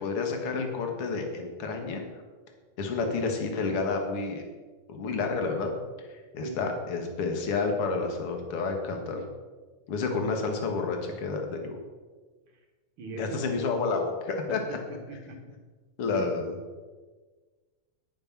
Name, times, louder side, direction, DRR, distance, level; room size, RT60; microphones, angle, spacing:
voice 1, 0.0-2.0 2.8-4.4 4.9-5.7 6.0-6.1 6.3-9.2 9.9-11.8 13.2-14.8 16.0-16.5, left 4 dB, 50° left, 3 dB, 2.2 m, -30 dB
voice 2, 13.0-13.7 14.5-15.6 16.1-16.3, right 2 dB, 50° right, 2 dB, 1.8 m, -41 dB
10.0 x 9.4 x 6.0 m, 1.4 s
omnidirectional pair, 3.9 m